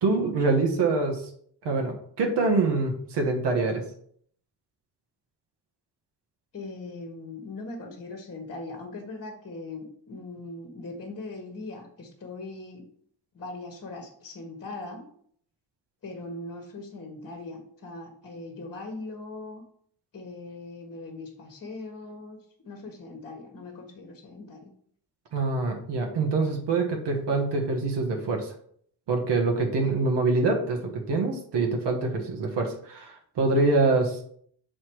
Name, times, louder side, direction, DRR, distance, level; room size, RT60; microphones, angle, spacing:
voice 1, 0.0-1.2 1.6-3.8 25.3-28.5 29.1-34.2, right 3 dB, 80° right, 2 dB, 1.4 m, -25 dB
voice 2, 6.5-12.8 13.3-15.1 16.0-19.6 20.1-22.4 22.6-24.7 29.7-29.9, left 2 dB, 35° left, 3 dB, 1.3 m, -40 dB
6.7 x 4.1 x 4.6 m, 0.62 s
cardioid pair, 120°, 41 cm